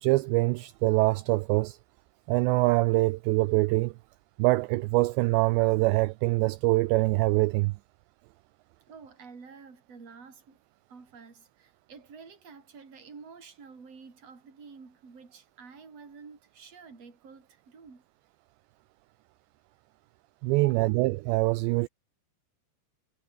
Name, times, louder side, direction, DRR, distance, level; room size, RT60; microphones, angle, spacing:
voice 1, 0.0-1.8 2.3-3.9 4.4-7.7 20.4-21.9, right 22 dB, 90° right, 2.5 m, -24 dB
voice 2, 8.9-10.6 10.9-18.0 20.5-21.0, right 5 dB, 30° right, 5.9 m, -49 dB
omnidirectional pair, 5.6 m